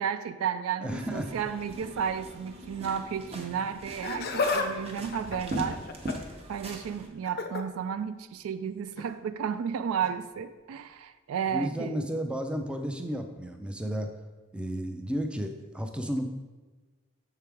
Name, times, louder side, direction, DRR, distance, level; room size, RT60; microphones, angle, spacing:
voice 1, 0.0-5.8 6.5-12.0 16.2-16.3, right 7 dB, 75° right, 12 dB, 0.3 m, -33 dB
voice 2, 0.8-1.3 11.5-14.1 14.5-16.3, equal, 5° right, 5 dB, 0.4 m, -32 dB
sound 1, 0.9-7.1, right 1 dB, 30° right, 0.7 m, -40 dB
Laughter, 3.9-4.7 5.0-6.3 7.2-7.6 8.9-9.1 10.0-10.1, left 4 dB, 50° left, 0.5 m, -31 dB
6.6 x 4.6 x 3.4 m, 1.2 s
head